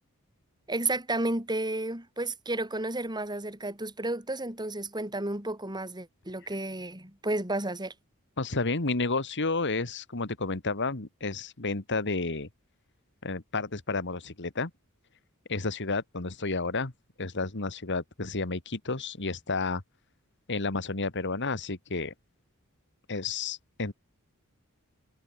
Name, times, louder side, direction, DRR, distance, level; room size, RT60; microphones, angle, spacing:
voice 1, 0.7-7.9, right 2 dB, 20° right, 7.7 m, -32 dB
voice 2, 8.4-12.5 13.2-14.7 15.5-16.9 17.2-19.8 20.5-22.1 23.1-23.9, left 3 dB, 55° left, 2.0 m, -31 dB
head